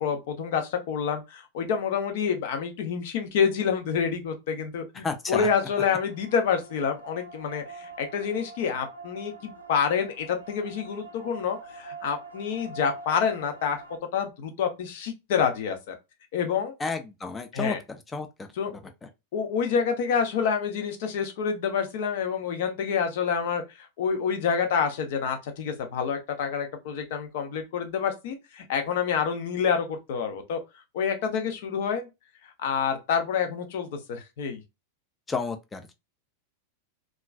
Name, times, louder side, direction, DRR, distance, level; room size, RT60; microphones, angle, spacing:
voice 1, 0.0-13.8 14.1-15.9 16.3-16.7 17.5-17.8 18.6-18.8 19.3-30.6 30.9-32.1 32.6-34.6, left 6 dB, 50° left, 0.7 m, -28 dB
voice 2, 5.0-5.5 16.8-18.8 35.3-35.9, left 4 dB, 15° left, 0.5 m, -32 dB
sound 1, 5.4-14.0, right 3 dB, 80° right, 0.6 m, -44 dB
3.0 x 2.4 x 2.3 m
figure-of-eight pair, 90°, 0 cm